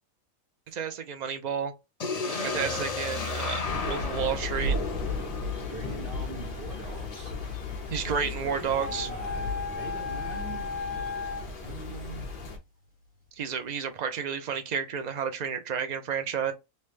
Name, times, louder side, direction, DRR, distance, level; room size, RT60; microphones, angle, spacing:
voice 1, 0.7-1.7 2.3-4.8 7.9-9.1 13.3-16.5, right 7 dB, 65° right, 0.4 m, -31 dB
sound 1, 2.0-5.9, left 4 dB, 75° left, 0.3 m, -34 dB
voice 2, 2.1-2.9 5.5-7.3 8.1-10.7 11.6-12.3, right 3 dB, 45° right, 1.2 m, -43 dB
Thunder / Rain, 3.6-12.6, left 2 dB, 45° left, 0.9 m, -35 dB
sound 2, 8.7-11.4, left 4 dB, 5° left, 1.5 m, -35 dB
3.2 x 2.8 x 3.3 m
omnidirectional pair, 1.4 m